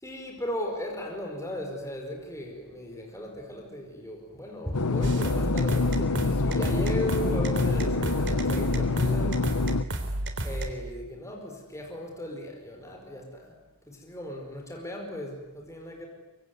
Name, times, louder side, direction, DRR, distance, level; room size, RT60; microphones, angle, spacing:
voice 1, 0.0-9.5 10.4-13.6 13.9-16.1, left 1 dB, 15° left, 2 dB, 5.0 m, -36 dB
sound 1, 4.7-9.8, left 3 dB, 90° left, 0.9 m, -26 dB
sound 2, 5.0-10.7, right 1 dB, 55° right, 3.5 m, -31 dB
25.5 x 23.5 x 9.6 m, 1.0 s
head